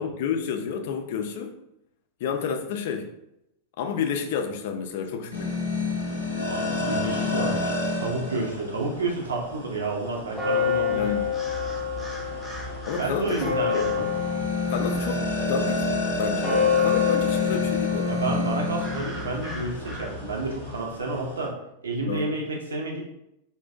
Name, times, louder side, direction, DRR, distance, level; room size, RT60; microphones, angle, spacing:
voice 1, 0.0-1.5 2.2-3.1 3.8-5.6 10.9-11.3 12.9-13.8 14.7-15.8 16.2-18.2 22.1-22.3, left 6 dB, 55° left, 5 dB, 0.3 m, -30 dB
sound 1, 5.3-21.5, left 2 dB, 85° left, 0.6 m, -30 dB
voice 2, 6.4-11.2 13.0-14.0 18.1-21.5 21.8-23.0, right 2 dB, 70° right, -1 dB, 0.5 m, -30 dB
sound 2, 10.3-20.8, left 6 dB, 5° left, 0.6 m, -28 dB
2.5 x 2.1 x 2.4 m, 0.83 s
figure-of-eight pair, 90°, 0 cm